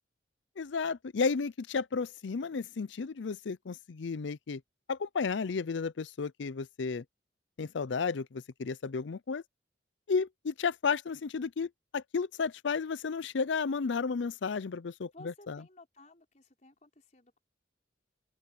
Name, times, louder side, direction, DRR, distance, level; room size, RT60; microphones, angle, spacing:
voice 1, 0.6-4.6 4.9-7.0 7.6-9.4 10.1-15.6, left 5 dB, 75° left, 0.5 m, -33 dB
voice 2, 15.1-17.4, left 2 dB, 40° left, 4.4 m, -55 dB
open air
head